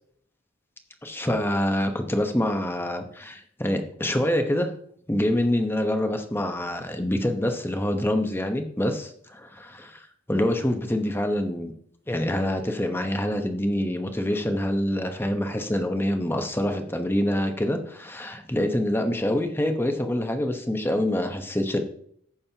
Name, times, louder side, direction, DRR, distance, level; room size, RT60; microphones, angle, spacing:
voice 1, 1.0-4.7 5.1-11.7 12.1-21.8, left 1 dB, 10° left, 5 dB, 1.0 m, -26 dB
14.5 x 6.4 x 2.9 m, 0.64 s
head